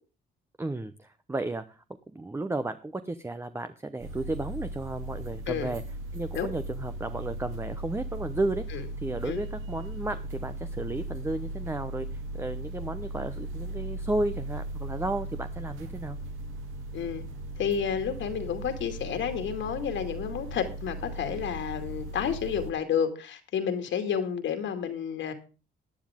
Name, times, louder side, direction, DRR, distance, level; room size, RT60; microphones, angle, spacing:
voice 1, 0.6-1.8 2.1-5.8 6.1-16.2, right 2 dB, 10° right, 10 dB, 0.8 m, -33 dB
sound 1, 4.0-22.7, right 1 dB, 85° right, 2.4 m, -37 dB
voice 2, 17.6-25.3, left 7 dB, 70° left, 7 dB, 2.3 m, -30 dB
15.0 x 9.6 x 3.6 m, 0.33 s
cardioid pair, 90°, 20 cm